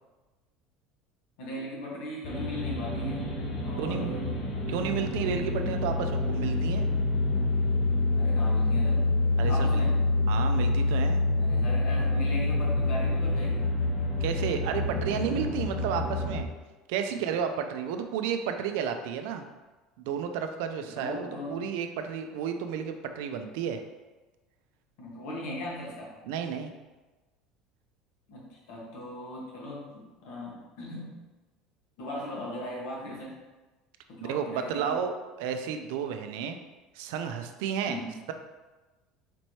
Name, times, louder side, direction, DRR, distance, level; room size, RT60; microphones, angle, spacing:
voice 1, 1.4-3.3 3.6-4.3 8.1-9.1 9.5-10.0 11.4-13.7 17.1-17.2 20.9-21.6 25.0-26.1 28.3-31.2 32.0-33.4 34.1-34.9 37.8-38.2, left 1 dB, 70° left, -3 dB, 1.2 m, -38 dB
sound 1, 2.2-16.4, left 2 dB, 35° left, 0.7 m, -27 dB
voice 2, 3.8-4.1 4.7-6.9 9.4-9.8 10.3-11.2 14.2-16.5 16.9-19.4 20.0-23.8 26.3-26.7 34.2-36.6 36.9-38.0, right 7 dB, 75° right, 7 dB, 0.4 m, -32 dB
4.3 x 3.1 x 2.8 m, 1.2 s
cardioid pair, 160°, 0 cm